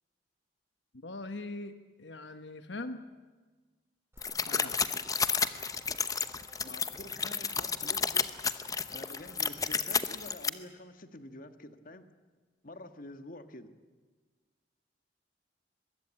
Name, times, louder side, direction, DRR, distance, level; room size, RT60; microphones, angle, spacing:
voice 1, 1.0-3.0 4.5-4.8, left 2 dB, 85° left, 9 dB, 1.2 m, -41 dB
sound 1, 4.1-9.7, right 1 dB, 15° right, 4.2 m, -58 dB
sound 2, 4.2-10.5, left 5 dB, 20° left, 0.9 m, -31 dB
voice 2, 6.6-8.4 8.9-12.1 12.6-13.7, left 1 dB, 50° left, 9 dB, 1.6 m, -48 dB
23.0 x 21.5 x 8.9 m, 1.3 s
head